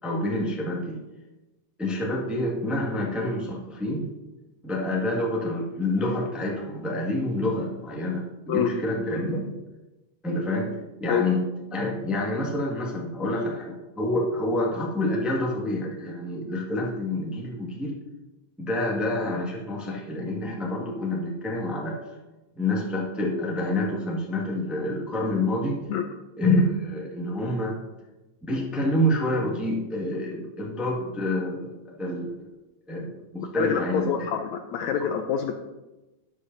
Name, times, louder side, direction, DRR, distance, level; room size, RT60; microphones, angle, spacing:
voice 1, 0.0-1.0 1.8-4.1 4.6-9.6 10.2-11.4 11.7-18.0 18.6-22.0 22.5-25.9 26.4-27.8 28.5-32.3 32.9-34.3 35.0-35.1, left 1 dB, ahead, -3 dB, 1.0 m, -27 dB
voice 2, 33.6-35.5, left 8 dB, 75° left, 5 dB, 1.7 m, -26 dB
13.0 x 10.5 x 2.8 m, 1.1 s
omnidirectional pair, 3.7 m